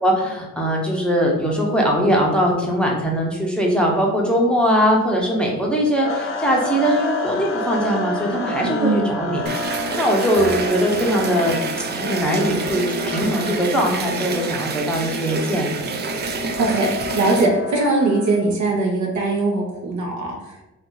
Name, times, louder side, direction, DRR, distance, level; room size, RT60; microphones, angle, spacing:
voice 1, 0.0-9.4 10.0-15.9, equal, 5° left, -2 dB, 0.7 m, -21 dB
sound 1, 6.0-18.4, left 2 dB, 45° left, 0.6 m, -30 dB
voice 2, 8.6-9.1 16.6-20.6, right 2 dB, 70° right, 0 dB, 0.9 m, -21 dB
sound 2, 9.5-17.5, right 4 dB, 35° right, 0.4 m, -28 dB
2.6 x 2.4 x 3.7 m, 0.99 s
cardioid pair, 90°, 30 cm